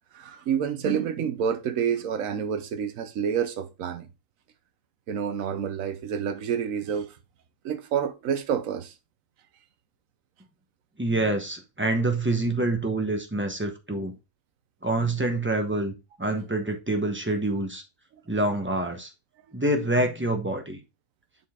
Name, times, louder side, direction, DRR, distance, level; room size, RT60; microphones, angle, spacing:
voice 1, 0.1-4.1 5.1-7.2 7.6-8.9 18.1-18.2, right 8 dB, 70° right, 1.2 m, -28 dB
voice 2, 11.0-14.1 14.8-15.9 16.2-17.8 18.3-19.1 19.5-20.8, right 2 dB, 10° right, 0.9 m, -26 dB
7.3 x 4.3 x 3.6 m
omnidirectional pair, 1.5 m